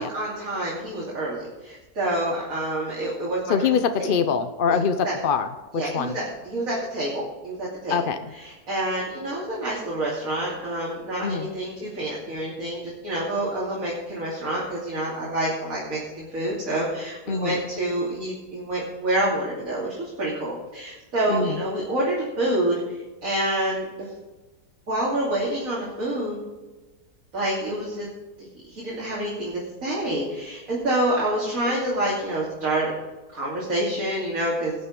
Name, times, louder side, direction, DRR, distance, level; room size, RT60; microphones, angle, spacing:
voice 1, 0.0-3.5 4.0-4.1 4.7-4.8 5.0-5.1 5.7-8.0 8.3-22.8 23.2-24.0 24.9-26.4 27.3-28.1 28.6-32.9 33.3-34.7, right 1 dB, 55° right, -6 dB, 3.1 m, -27 dB
voice 2, 3.5-5.5 5.9-6.1 7.9-8.2 11.2-11.5 17.3-17.6 21.3-21.6, left 6 dB, 55° left, 9 dB, 0.6 m, -24 dB
19.0 x 6.6 x 5.3 m, 1.2 s
omnidirectional pair, 1.7 m